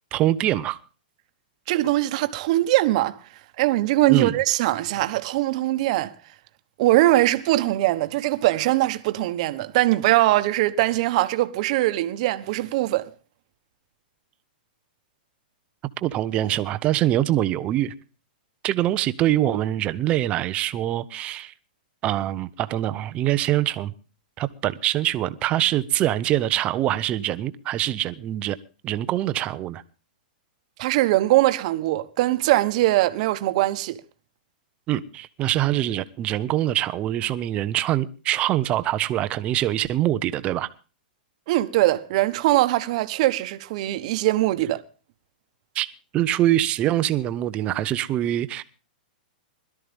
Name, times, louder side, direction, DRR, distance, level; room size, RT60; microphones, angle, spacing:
voice 1, 0.1-0.8 4.1-4.4 16.0-17.9 18.6-21.5 22.0-23.9 24.4-28.6 28.8-29.8 34.9-40.7 45.7-45.9 46.1-48.6, right 13 dB, 25° right, 0.8 m, -24 dB
voice 2, 1.7-3.2 3.6-6.1 6.8-13.1 30.8-34.0 41.5-44.8, right 17 dB, 45° right, 1.3 m, -21 dB
21.5 x 13.0 x 3.5 m
hypercardioid pair, 160°, 5 cm